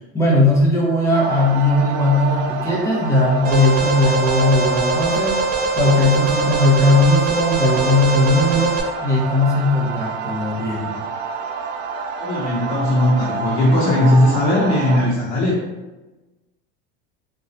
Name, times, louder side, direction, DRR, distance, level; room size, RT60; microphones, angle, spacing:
voice 1, 0.1-5.4 5.8-11.0, left 2 dB, 10° left, -4 dB, 0.6 m, -18 dB
sound 1, 1.1-15.1, right 5 dB, 80° right, 0.5 m, -28 dB
Alarm, 3.4-8.8, right 3 dB, 30° right, 0.6 m, -22 dB
voice 2, 12.2-15.6, left 1 dB, 65° left, -7 dB, 0.8 m, -18 dB
2.8 x 2.2 x 2.7 m, 1.1 s
supercardioid pair, 140°, 30 cm